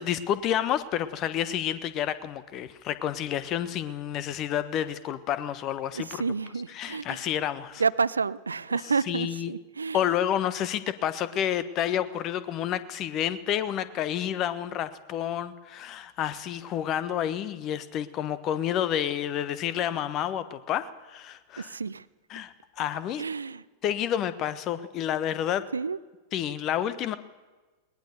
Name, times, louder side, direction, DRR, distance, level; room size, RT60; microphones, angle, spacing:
voice 1, 0.0-6.2 6.8-7.8 9.1-9.5 9.9-21.7 22.3-23.2 23.8-25.6 26.3-27.2, left 10 dB, 35° left, 14 dB, 1.2 m, -29 dB
voice 2, 5.9-7.2 7.8-10.0 21.6-22.1 23.2-23.6 25.7-26.0, right 5 dB, 75° right, 18 dB, 0.6 m, -29 dB
21.0 x 19.5 x 6.8 m, 1.2 s
figure-of-eight pair, 90°, 0 cm